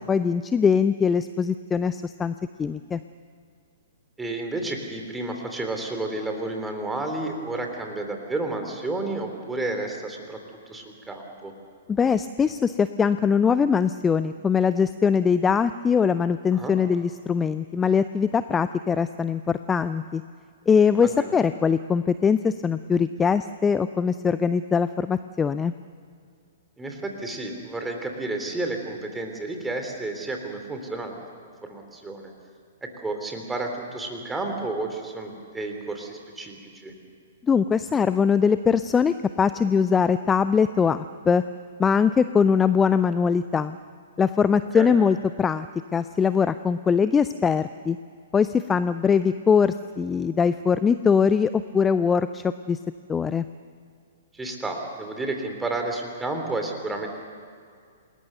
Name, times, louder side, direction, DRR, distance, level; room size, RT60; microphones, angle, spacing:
voice 1, 0.1-3.0 11.9-20.2 20.7-25.7 37.5-41.4 41.8-43.8 44.2-45.7 45.9-48.0 48.3-52.8 53.1-53.4, left 6 dB, 15° left, 13 dB, 0.5 m, -22 dB
voice 2, 4.2-10.4 10.7-11.5 16.5-16.7 20.9-21.3 26.8-31.2 31.4-32.3 33.0-36.9 44.7-44.9 54.3-57.1, right 2 dB, 10° right, 4 dB, 3.3 m, -31 dB
28.0 x 20.0 x 6.8 m, 2.2 s
figure-of-eight pair, 115°, 0 cm